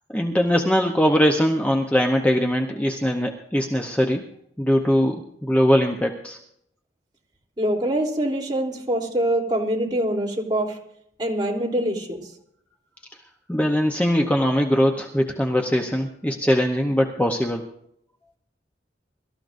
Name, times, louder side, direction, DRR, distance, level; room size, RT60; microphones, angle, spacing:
voice 1, 0.1-4.2 4.6-6.4 13.5-17.6, equal, 10° left, 2 dB, 0.8 m, -21 dB
voice 2, 7.6-10.8 11.2-12.2, right 1 dB, 25° right, -3 dB, 3.3 m, -24 dB
24.5 x 13.5 x 2.6 m, 0.72 s
head